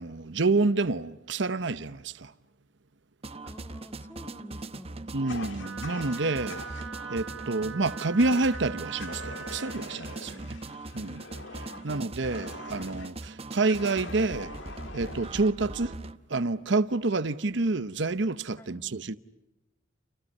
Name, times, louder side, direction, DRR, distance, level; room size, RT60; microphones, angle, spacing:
voice 1, 0.0-2.3 5.1-6.6 7.1-10.5 10.9-11.2 11.8-14.5 14.9-15.9 16.3-19.2, right 3 dB, 65° right, 0.9 m, -28 dB
sound 1, 3.2-16.2, right 2 dB, 30° right, 0.9 m, -41 dB
voice 2, 3.4-5.0 10.2-10.5 11.1-11.4 11.7-11.9 18.6-18.9, equal, 15° left, 2.5 m, -49 dB
Fire, 5.3-6.9 8.2-8.6 9.0-13.1 13.6-15.5, left 3 dB, 70° left, 1.9 m, -44 dB
Wind instrument woodwind instrument, 5.6-9.8, right 6 dB, 90° right, 0.9 m, -41 dB
30.0 x 29.5 x 5.4 m
head